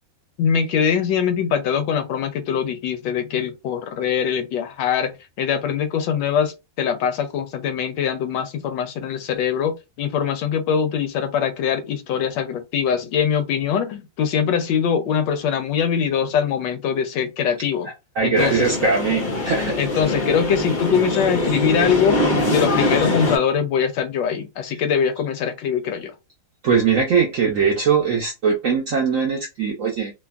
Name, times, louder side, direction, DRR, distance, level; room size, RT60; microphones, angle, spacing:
voice 1, 0.4-17.9 18.2-18.7 19.8-26.1, left 7 dB, 80° left, 1.2 m, -22 dB
voice 2, 18.2-19.7 26.6-30.1, right 5 dB, 70° right, 0.7 m, -20 dB
sound 1, 18.3-23.4, left 1 dB, 45° left, 0.6 m, -23 dB
3.4 x 2.1 x 2.3 m
omnidirectional pair, 2.0 m